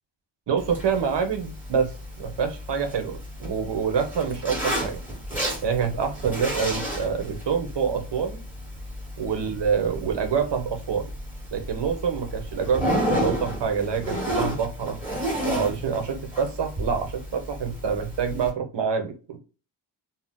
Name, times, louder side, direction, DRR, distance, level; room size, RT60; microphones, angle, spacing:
voice 1, 0.5-1.9 2.2-5.0 5.6-8.4 9.2-11.1 11.5-15.0 15.4-19.4, right 6 dB, 65° right, 6 dB, 0.8 m, -26 dB
Zipper (clothing), 0.6-18.5, equal, 5° right, 1.5 m, -32 dB
2.7 x 2.1 x 3.5 m, 0.34 s
wide cardioid pair, 115°, 45 cm